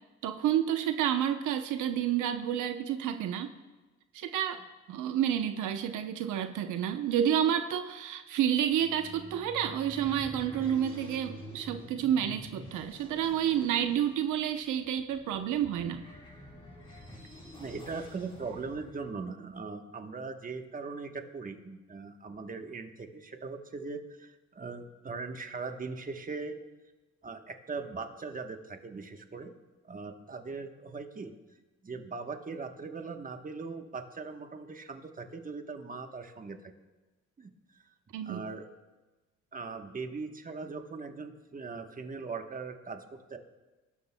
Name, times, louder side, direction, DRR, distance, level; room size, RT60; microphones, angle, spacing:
voice 1, 0.2-3.5 4.1-4.6 4.9-16.0 38.1-38.4, right 10 dB, 85° right, 7 dB, 0.8 m, -29 dB
sound 1, 8.6-19.1, equal, 15° left, 4.1 m, -48 dB
voice 2, 17.6-26.6 27.2-29.5 29.8-31.3 31.8-36.7 37.4-37.5 38.2-38.7 39.5-43.4, right 4 dB, 30° right, 6 dB, 1.1 m, -40 dB
21.5 x 12.5 x 2.2 m, 1.1 s
cardioid pair, 90°, 30 cm